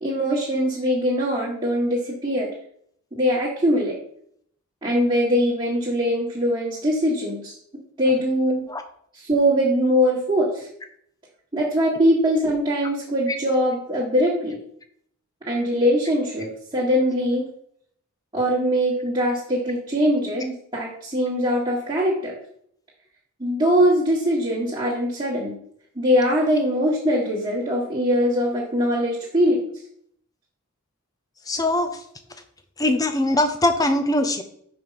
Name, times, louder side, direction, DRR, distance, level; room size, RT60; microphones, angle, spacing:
voice 1, 0.0-2.5 3.2-3.9 4.8-7.6 8.0-8.6 9.1-10.7 11.5-14.6 15.5-16.5 16.7-17.5 18.3-22.3 23.4-25.6 25.9-29.6, equal, 20° right, -6 dB, 1.7 m, -22 dB
voice 2, 31.5-31.9 32.8-34.4, left 1 dB, 15° left, 7 dB, 0.7 m, -21 dB
5.5 x 4.9 x 5.8 m, 0.66 s
head